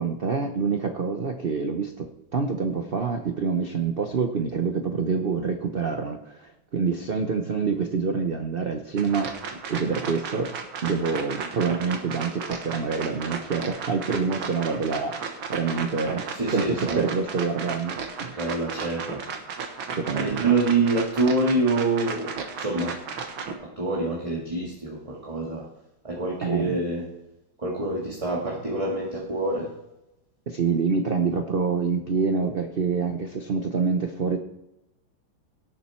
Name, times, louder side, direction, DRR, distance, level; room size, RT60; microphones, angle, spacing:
voice 1, 0.0-9.3 9.7-10.5 10.8-18.4 20.0-20.4 26.4-26.8 30.5-34.4, right 5 dB, 55° right, 6 dB, 0.6 m, -26 dB
sound 1, 9.0-23.6, right 5 dB, 85° right, 2.1 m, -34 dB
voice 2, 16.3-17.2 18.4-19.2 20.1-22.9 23.6-25.7 26.0-27.0 27.6-29.7, right 3 dB, 20° right, -3 dB, 1.7 m, -26 dB
18.0 x 7.2 x 4.5 m, 0.89 s
omnidirectional pair, 2.1 m